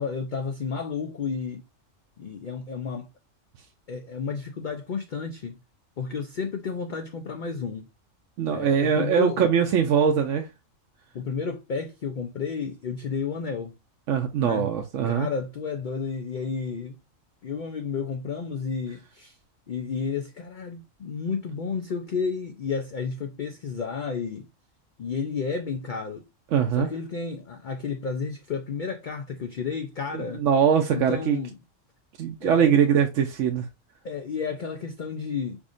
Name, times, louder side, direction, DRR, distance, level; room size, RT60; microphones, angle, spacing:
voice 1, 0.0-1.6 2.2-3.1 3.9-5.6 6.0-7.9 8.5-9.5 11.1-13.7 14.4-14.7 15.0-17.0 17.4-19.4 19.7-24.5 25.0-26.3 26.7-30.4 30.9-31.5 32.4-32.7 34.0-35.6, left 5 dB, 60° left, 0.5 m, -31 dB
voice 2, 8.4-10.4 14.1-15.3 26.5-26.9 30.1-31.4 32.2-33.7, right 8 dB, 70° right, 1.0 m, -22 dB
5.0 x 3.5 x 2.5 m
omnidirectional pair, 1.4 m